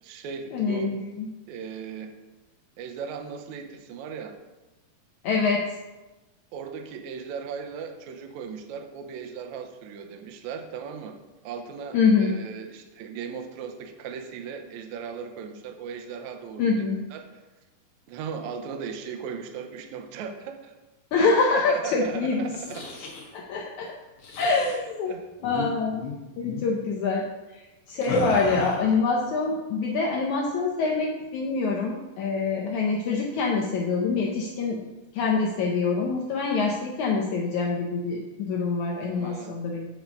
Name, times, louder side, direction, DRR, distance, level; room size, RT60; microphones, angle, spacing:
voice 1, 0.0-1.0 1.5-2.2 2.8-4.4 6.5-11.2 11.4-17.4 18.1-20.7 21.5-22.9 25.0-25.3 39.1-39.6, right 6 dB, 75° right, 4 dB, 1.7 m, -37 dB
voice 2, 0.5-1.3 5.2-5.6 11.9-12.4 16.6-17.0 21.1-22.5 23.3-23.9 24.4-25.1 25.4-26.1 26.4-27.3 27.5-34.8 35.1-39.9, left 4 dB, 75° left, -1 dB, 1.8 m, -25 dB
sound 1, 22.4-23.3 24.2-24.8 25.4-25.7 25.9-26.1 26.4-26.7 28.0-29.0, left 3 dB, 60° left, 1.7 m, -33 dB
8.7 x 4.7 x 5.2 m, 1.1 s
omnidirectional pair, 4.2 m